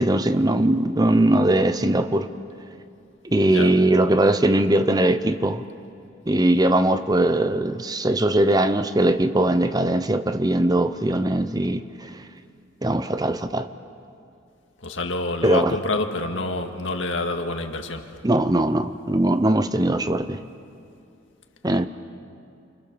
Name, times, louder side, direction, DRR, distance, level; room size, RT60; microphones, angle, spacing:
voice 1, 0.0-2.3 3.2-5.7 6.3-12.3 12.8-13.7 15.4-15.8 18.2-20.4 21.6-21.9, right 1 dB, 20° right, 11 dB, 0.7 m, -20 dB
voice 2, 14.8-18.1, left 2 dB, 75° left, 4 dB, 2.0 m, -27 dB
29.5 x 25.5 x 7.0 m, 2.5 s
head